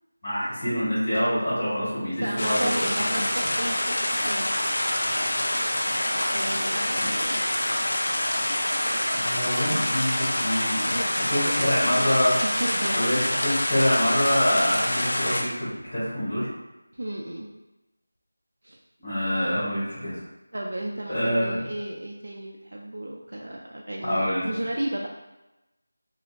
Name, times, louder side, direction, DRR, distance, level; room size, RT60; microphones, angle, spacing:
voice 1, 0.2-3.3 9.1-12.3 12.9-16.5 19.0-20.2 21.1-21.7 24.0-24.5, equal, 35° left, -11 dB, 1.4 m, -26 dB
voice 2, 2.0-4.5 6.3-7.4 10.8-11.2 11.4-11.8 12.4-13.3 16.9-17.5 18.6-18.8 20.5-25.1, right 1 dB, 65° right, -2 dB, 0.4 m, -33 dB
sound 1, 2.4-15.4, left 1 dB, 55° left, 0.4 m, -26 dB
2.8 x 2.5 x 2.4 m, 1.0 s
figure-of-eight pair, 175°, 0 cm